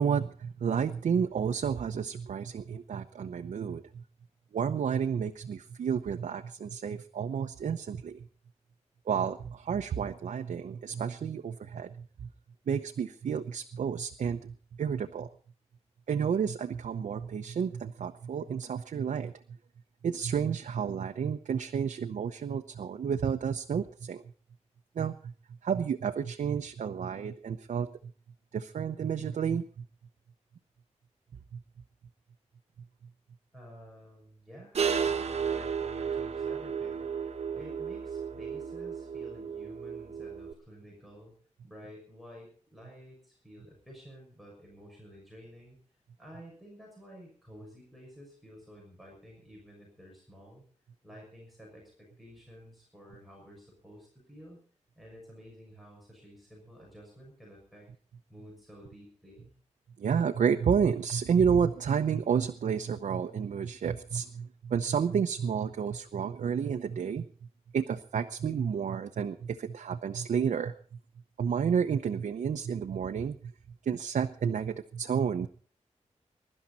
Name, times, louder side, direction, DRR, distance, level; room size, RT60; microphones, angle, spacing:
voice 1, 0.0-4.0 4.5-8.2 9.1-12.3 12.7-15.3 16.1-19.3 20.0-24.2 25.0-25.3 25.6-27.9 28.5-29.6 60.0-67.3 67.7-70.7 71.4-73.5 73.9-75.5, right 7 dB, 85° right, 6 dB, 0.8 m, -30 dB
voice 2, 33.5-41.4 41.6-45.8 46.2-50.6 51.0-54.6 55.0-57.9 58.3-59.5, equal, ahead, -2 dB, 6.1 m, -51 dB
sound 1, 34.7-40.5, right 6 dB, 60° right, 1.7 m, -33 dB
22.5 x 12.0 x 4.1 m, 0.42 s
wide cardioid pair, 150°, 12 cm